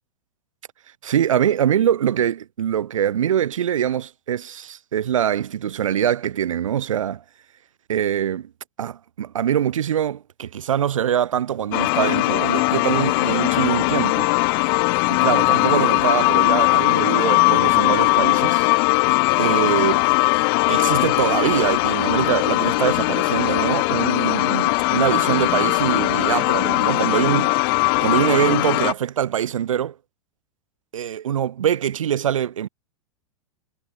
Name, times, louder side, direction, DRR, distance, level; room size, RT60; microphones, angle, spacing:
voice 1, 1.0-7.2 7.9-8.5 8.8-14.3 15.1-18.7 19.4-20.0 20.7-27.5 28.0-30.0 30.9-32.7, right 10 dB, 75° right, 0.4 m, -23 dB
sound 1, 11.7-28.9, left 30 dB, 45° left, 0.4 m, -19 dB
figure-of-eight pair, 95°, 17 cm